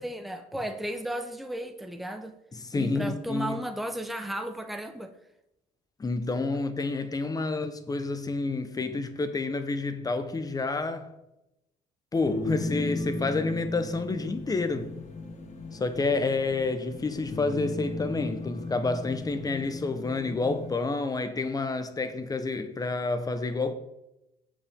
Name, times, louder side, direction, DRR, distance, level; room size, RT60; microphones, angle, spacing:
voice 1, 0.0-2.3 2.7-5.1, right 1 dB, ahead, 0.9 m, -34 dB
voice 2, 2.5-3.6 6.0-11.1 12.1-14.9 15.7-23.7, left 3 dB, 20° left, 1.1 m, -29 dB
sound 1, 12.1-20.8, left 2 dB, 40° left, 1.7 m, -36 dB
15.5 x 5.3 x 3.7 m
cardioid pair, 110°, 17 cm